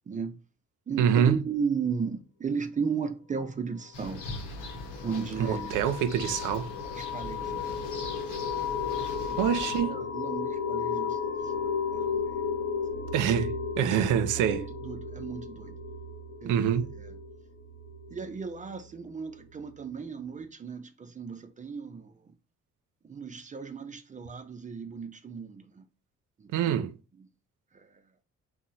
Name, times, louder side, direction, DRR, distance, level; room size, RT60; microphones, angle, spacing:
voice 1, 0.1-0.4 0.9-4.3 5.0-5.7 6.9-8.5 9.2-11.6 11.9-12.5 14.1-15.8 16.4-17.2 18.1-22.3 23.0-25.9 26.4-26.8 27.2-27.3 27.7-28.0, right 6 dB, 25° right, 0.4 m, -36 dB
voice 2, 1.0-1.4 5.4-6.7 9.4-10.0 13.1-14.6 16.4-16.9 26.5-26.9, right 9 dB, 90° right, 0.5 m, -25 dB
sound 1, 3.9-9.8, left 2 dB, 85° left, 0.9 m, -41 dB
sound 2, 4.2-18.6, left 5 dB, 55° left, 0.8 m, -34 dB
2.8 x 2.1 x 3.9 m
cardioid pair, 90°, 30 cm